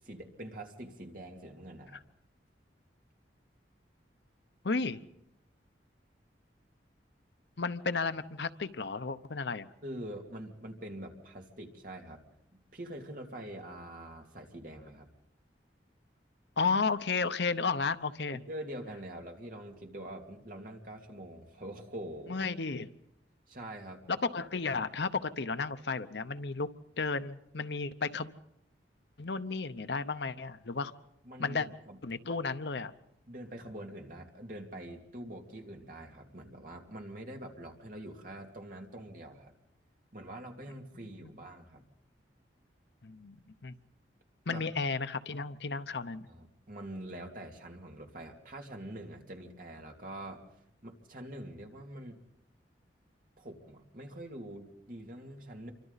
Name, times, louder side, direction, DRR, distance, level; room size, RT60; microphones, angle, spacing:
voice 1, 0.0-2.0 9.8-12.2 12.7-15.1 18.3-22.5 23.5-24.0 31.2-32.0 33.3-39.5 40.1-41.8 44.5-44.6 46.3-50.4 50.8-52.2 53.4-55.7, right 1 dB, 50° right, 2 dB, 2.6 m, -45 dB
voice 2, 4.6-5.0 7.6-9.7 16.6-18.4 22.3-22.9 24.1-26.7 27.0-28.3 29.2-30.9 31.4-31.7 32.0-32.9 41.2-41.3 43.0-43.7 44.5-46.3, left 4 dB, 70° left, 11 dB, 0.8 m, -33 dB
27.5 x 24.5 x 4.1 m, 0.81 s
head